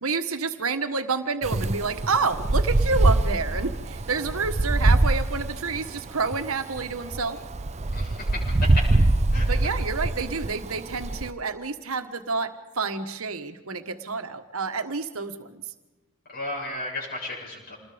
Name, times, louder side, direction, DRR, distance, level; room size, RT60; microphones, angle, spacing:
voice 1, 0.0-7.4 9.5-15.6, right 4 dB, 70° right, 8 dB, 1.5 m, -29 dB
Wind, 1.4-11.3, right 2 dB, 30° right, 0.6 m, -24 dB
voice 2, 7.9-8.8 9.3-9.5 16.3-17.7, left 1 dB, 45° left, -4 dB, 7.5 m, -33 dB
27.5 x 20.0 x 5.2 m, 1.1 s
head